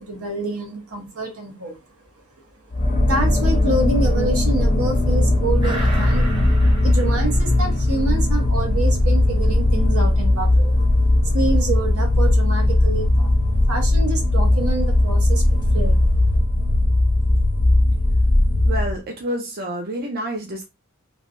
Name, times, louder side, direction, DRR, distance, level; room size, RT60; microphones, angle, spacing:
voice 1, 0.0-1.8 3.0-6.5 6.8-10.7 11.2-13.3 13.6-16.1, right 2 dB, 75° right, 1.0 m, -27 dB
sound 1, 2.7-19.0, left 1 dB, 40° left, 0.6 m, -18 dB
sound 2, 5.6-8.5 8.9-9.0, right 1 dB, 20° right, 1.0 m, -33 dB
voice 2, 18.6-20.6, right 1 dB, 45° right, 0.6 m, -28 dB
3.3 x 2.1 x 2.6 m
head